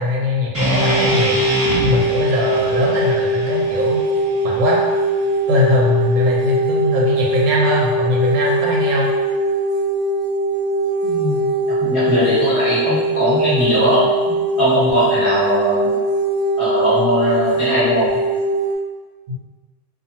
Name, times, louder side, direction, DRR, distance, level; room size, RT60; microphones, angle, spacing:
voice 1, 0.0-1.4 1.8-4.0 4.4-4.8 5.5-9.1 19.3-19.4, left 1 dB, 75° right, -3 dB, 1.1 m, -20 dB
sound 1, 0.5-4.7, equal, 15° right, 0.6 m, -24 dB
sound 2, 0.7-18.7, right 1 dB, 70° left, 0.9 m, -21 dB
voice 2, 11.0-11.5 11.8-15.9 16.6-18.1, equal, 25° left, -11 dB, 1.0 m, -19 dB
2.7 x 2.3 x 2.7 m, 1.3 s
omnidirectional pair, 1.6 m